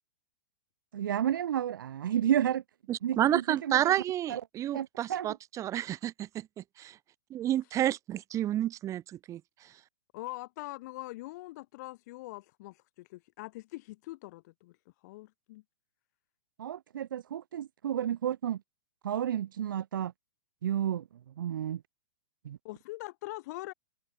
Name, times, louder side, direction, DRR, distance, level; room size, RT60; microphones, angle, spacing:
voice 1, 0.9-2.6 3.0-3.9 4.3-4.4 4.7-5.3 16.6-18.6 19.0-20.1 20.6-21.0 21.4-21.8 22.4-22.6, right 10 dB, 65° right, 2.5 m, -31 dB
voice 2, 2.9-6.9 7.3-9.4, right 12 dB, 25° right, 2.5 m, -30 dB
voice 3, 10.1-14.8 15.0-15.6 22.6-23.7, left 19 dB, 50° left, 7.5 m, -43 dB
open air
hypercardioid pair, 115°, 12 cm